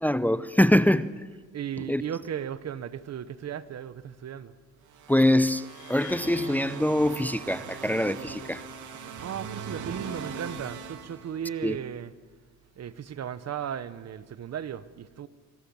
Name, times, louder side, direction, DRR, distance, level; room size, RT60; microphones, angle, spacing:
voice 1, 0.0-1.2 1.8-2.0 5.1-8.6 11.6-11.8, left 1 dB, 5° left, 0.7 m, -24 dB
voice 2, 1.5-4.5 9.2-12.1 12.8-15.3, right 9 dB, 60° right, 1.3 m, -36 dB
sound 1, 4.9-11.8, right 6 dB, 75° right, 3.0 m, -40 dB
sound 2, 5.6-7.8, left 9 dB, 90° left, 2.0 m, -49 dB
27.0 x 24.0 x 7.2 m
cardioid pair, 90°, 30 cm